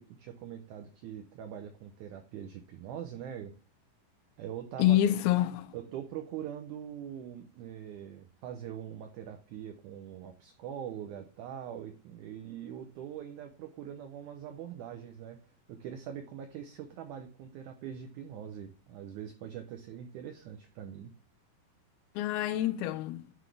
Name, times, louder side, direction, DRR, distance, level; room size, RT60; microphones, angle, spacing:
voice 1, 0.0-3.5 4.4-5.0 5.7-15.4 15.7-21.1, right 9 dB, 85° right, 1.7 m, -43 dB
voice 2, 4.8-5.7 22.2-23.3, left 12 dB, 90° left, 2.6 m, -27 dB
11.0 x 3.9 x 3.3 m
omnidirectional pair, 4.3 m